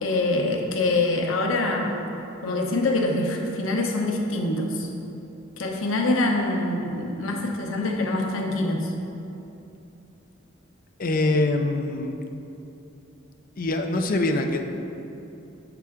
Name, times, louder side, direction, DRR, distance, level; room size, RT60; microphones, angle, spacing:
voice 1, 0.0-2.0 2.4-4.9 5.6-8.9, left 2 dB, 85° left, 1 dB, 0.9 m, -25 dB
voice 2, 11.0-12.1 13.6-14.6, left 2 dB, 45° left, 5 dB, 0.5 m, -24 dB
7.7 x 5.9 x 3.6 m, 2.8 s
head